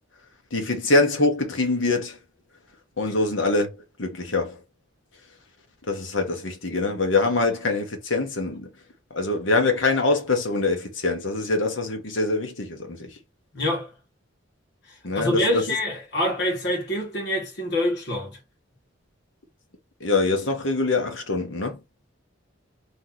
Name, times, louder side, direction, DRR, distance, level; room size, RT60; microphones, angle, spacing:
voice 1, 0.5-2.2 3.0-3.7 4.0-4.6 5.9-8.7 9.1-13.1 15.0-15.6 20.0-21.8, left 3 dB, 80° left, 1.2 m, -24 dB
voice 2, 13.5-13.9 15.1-18.4, left 1 dB, 60° left, 2.1 m, -25 dB
3.5 x 3.0 x 4.0 m
head